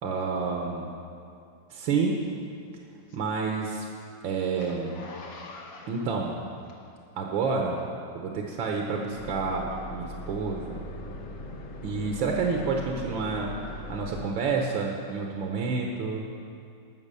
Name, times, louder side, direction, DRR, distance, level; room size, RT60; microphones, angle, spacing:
voice 1, 0.0-0.9 1.7-2.2 3.1-3.9 4.2-5.0 5.9-6.4 7.2-7.8 8.1-10.8 11.8-16.2, right 4 dB, 85° right, 1 dB, 1.7 m, -29 dB
Zipper (clothing), 2.2-7.2 7.7-7.9, left 3 dB, 80° left, 1.9 m, -46 dB
sound 1, 9.1-14.3, left 1 dB, 55° left, 1.0 m, -40 dB
15.0 x 6.1 x 6.7 m, 2.5 s
omnidirectional pair, 2.1 m